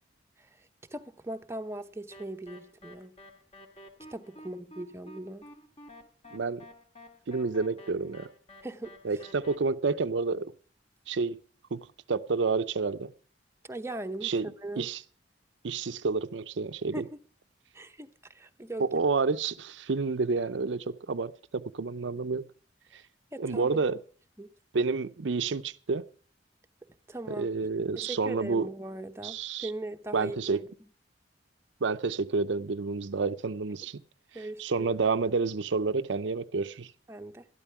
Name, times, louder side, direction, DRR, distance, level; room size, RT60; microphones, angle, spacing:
voice 1, 0.9-3.2 4.1-5.5 8.6-8.9 13.7-14.3 14.6-14.9 16.9-17.1 17.7-18.8 23.3-23.9 24.4-24.5 27.1-27.7 28.0-30.7 34.3-34.9 37.1-37.5, right 1 dB, 15° right, 0.8 m, -39 dB
sound 1, 2.1-9.6, left 1 dB, 35° left, 2.0 m, -50 dB
voice 2, 6.3-6.7 7.3-8.3 9.0-10.5 11.1-11.4 11.7-13.1 14.2-15.0 15.6-17.1 18.8-22.5 22.9-23.0 23.4-24.0 24.7-26.0 27.3-28.7 29.2-29.7 30.1-30.6 31.8-34.0 34.6-36.9, right 4 dB, 75° right, 0.6 m, -29 dB
12.5 x 12.0 x 5.8 m
head